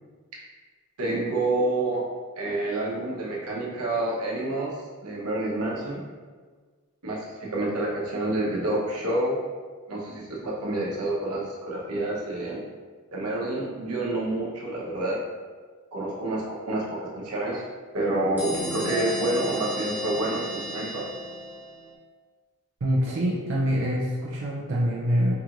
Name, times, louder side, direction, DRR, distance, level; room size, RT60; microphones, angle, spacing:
voice 1, 1.0-2.0 2.4-4.7 5.0-6.0 7.0-9.4 9.9-12.7 13.1-15.2 15.9-17.6 17.9-21.1, right 2 dB, 90° right, -3 dB, 1.0 m, -28 dB
sound 1, 18.4-21.9, equal, 10° right, 0.6 m, -33 dB
voice 2, 22.8-25.3, equal, 60° right, -5 dB, 0.5 m, -25 dB
4.6 x 2.9 x 2.5 m, 1.4 s
head